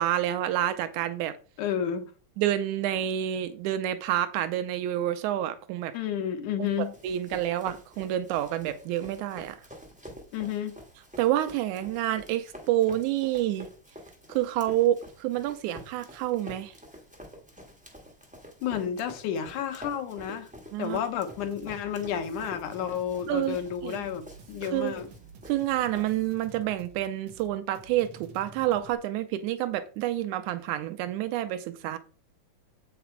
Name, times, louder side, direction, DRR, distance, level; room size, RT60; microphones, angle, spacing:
voice 1, 0.0-1.4 2.4-5.9 7.0-9.6 11.2-13.7 14.3-16.7 20.7-21.0 23.3-23.6 23.8-24.0 24.7-24.9 25.5-32.0, right 12 dB, 85° right, 2.0 m, -28 dB
voice 2, 1.6-2.0 5.9-6.9 10.3-10.8 18.6-20.5 20.8-24.2 24.5-25.1, left 9 dB, 85° left, 2.6 m, -31 dB
Run, 6.6-26.5, equal, 10° right, 0.3 m, -48 dB
sound 1, 21.3-29.0, right 5 dB, 65° right, 1.4 m, -50 dB
8.0 x 5.9 x 4.5 m
omnidirectional pair, 3.5 m